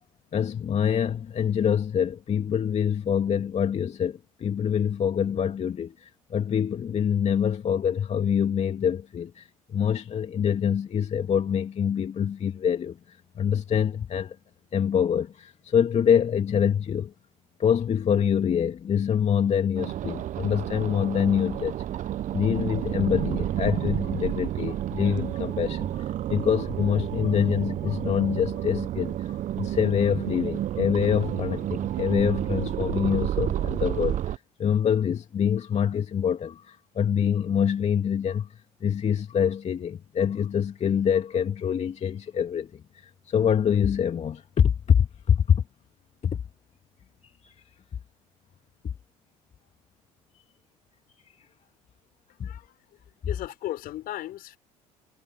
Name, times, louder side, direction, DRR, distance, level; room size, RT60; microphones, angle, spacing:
voice 1, 0.3-14.4 14.7-17.1 17.6-21.8 22.3-45.6 46.2-46.4 47.4-47.5 52.4-52.5, left 8 dB, 40° left, 2.6 m, -25 dB
sound 1, 19.8-34.4, right 12 dB, 45° right, 1.0 m, -30 dB
voice 2, 52.3-53.0 53.2-54.6, left 14 dB, 55° left, 6.2 m, -36 dB
hypercardioid pair, 65°, 18 cm